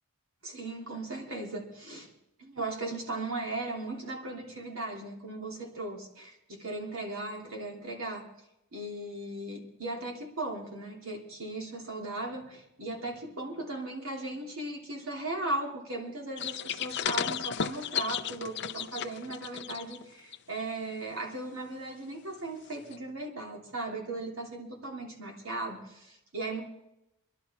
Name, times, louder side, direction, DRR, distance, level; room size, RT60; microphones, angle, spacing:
voice 1, 0.4-2.1 2.4-8.3 8.7-26.6, right 2 dB, 65° right, 0 dB, 3.1 m, -37 dB
sound 1, 16.4-20.0 20.3-20.6 22.9-23.0, left 8 dB, 50° left, 0.5 m, -34 dB
22.5 x 12.0 x 4.3 m, 0.84 s
head